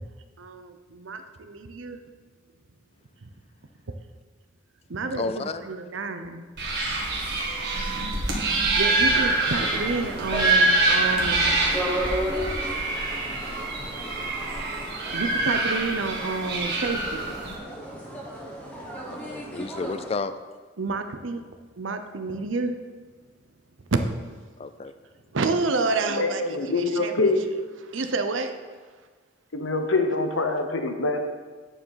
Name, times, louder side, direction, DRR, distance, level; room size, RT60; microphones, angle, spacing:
voice 1, 0.4-2.0 4.9-6.4 8.8-11.6 15.1-17.3 20.8-21.4 21.8-22.8 23.9-24.0 25.3-27.1 27.9-28.5, right 3 dB, 80° right, 8 dB, 0.7 m, -29 dB
voice 2, 5.2-5.6 19.1-20.3 24.6-24.9, left 3 dB, 30° left, 12 dB, 0.4 m, -31 dB
sound 1, 6.6-17.6, right 2 dB, 60° right, 1.8 m, -25 dB
sound 2, 9.1-20.1, equal, 5° left, 1.3 m, -35 dB
voice 3, 25.9-27.4 29.5-31.2, left 3 dB, 90° left, 5 dB, 1.0 m, -25 dB
9.2 x 4.8 x 5.7 m, 1.4 s
head